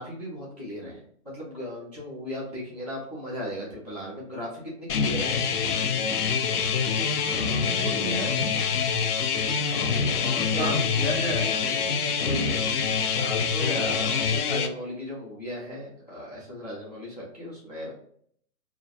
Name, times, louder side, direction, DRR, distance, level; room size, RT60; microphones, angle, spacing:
voice 1, 0.0-5.4 9.6-10.7 12.1-17.9, equal, 30° left, -6 dB, 0.4 m, -36 dB
sound 1, 4.9-14.7, left 6 dB, 90° left, 0.5 m, -26 dB
voice 2, 7.1-8.5 9.5-9.6 10.2-12.0, equal, 45° right, -2 dB, 0.7 m, -33 dB
2.3 x 2.1 x 2.7 m, 0.63 s
hypercardioid pair, 165°, 45 cm